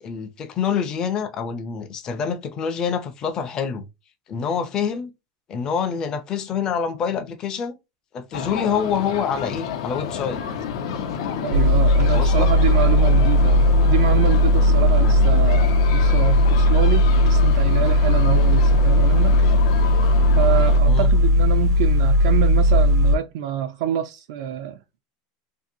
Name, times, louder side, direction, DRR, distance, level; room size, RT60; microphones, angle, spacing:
voice 1, 0.0-3.9 4.3-5.1 5.5-7.8 8.1-10.4 12.1-12.5 15.0-15.5 20.9-21.1, left 7 dB, 25° left, 0.5 m, -26 dB
sound 1, 8.3-20.8, left 7 dB, 75° left, 0.6 m, -30 dB
voice 2, 11.4-19.3 20.3-25.0, right 10 dB, 65° right, 0.4 m, -26 dB
sound 2, 11.5-23.2, left 1 dB, 85° right, 0.8 m, -17 dB
2.8 x 2.7 x 2.6 m
supercardioid pair, 165°, 3 cm